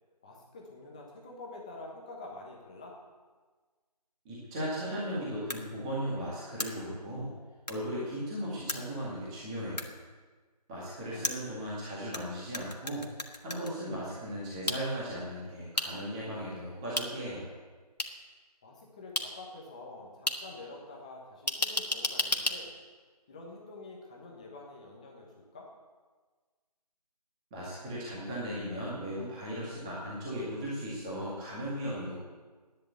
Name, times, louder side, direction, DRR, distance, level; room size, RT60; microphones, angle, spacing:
voice 1, 0.2-2.9 11.0-11.4 18.6-22.7 23.3-25.7, left 2 dB, 10° left, -1 dB, 1.2 m, -47 dB
voice 2, 4.2-7.3 7.7-9.9 10.7-13.1 13.4-17.5 27.5-32.2, equal, 10° right, -8 dB, 2.0 m, -37 dB
sound 1, 5.5-5.6 6.6-6.7 7.7-7.8 8.7-8.8 9.8-9.9 11.2-12.2 12.5-13.7 14.7-14.8 15.8-15.9 17.0-17.1 18.0-18.1 19.2-19.3 20.3-20.4 21.5-22.6, left 2 dB, 80° left, 2.1 m, -31 dB
14.0 x 10.0 x 8.1 m, 1.4 s
figure-of-eight pair, 165°, 21 cm